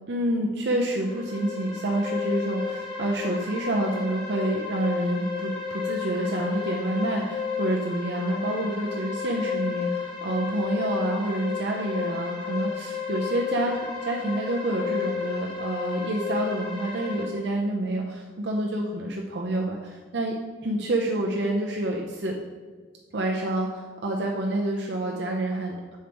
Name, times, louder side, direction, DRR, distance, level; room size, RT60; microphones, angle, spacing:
voice 1, 0.1-20.4 20.6-22.3 23.1-26.0, right 1 dB, 65° right, 0 dB, 0.6 m, -28 dB
sound 1, 0.9-17.2, left 6 dB, 30° left, 1.3 m, -32 dB
6.6 x 4.5 x 5.1 m, 1.5 s
head